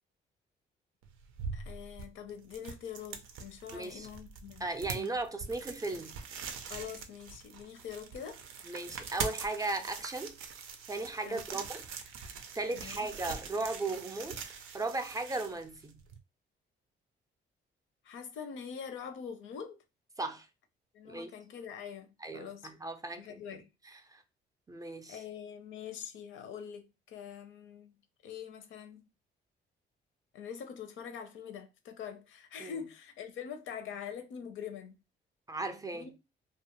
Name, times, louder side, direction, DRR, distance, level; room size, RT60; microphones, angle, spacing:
sound 1, 1.0-16.2, right 6 dB, 85° right, 0.5 m, -43 dB
voice 1, 1.5-4.7 4.9-5.1 6.7-8.4 11.2-11.7 12.7-13.1 18.0-19.8 20.9-22.7 23.2-23.7 25.1-28.0 28.2-29.0 30.3-35.0 35.9-36.2, left 7 dB, 80° left, 0.5 m, -44 dB
voice 2, 3.7-4.1 4.6-6.2 8.7-10.4 10.9-11.8 12.5-14.4 14.7-16.0 20.2-20.5 21.1-21.3 22.2-23.4 24.1-24.2 24.7-25.2 32.6-32.7 35.5-36.2, right 2 dB, 20° right, 0.4 m, -36 dB
2.3 x 2.1 x 2.9 m
cardioid pair, 90°, 20 cm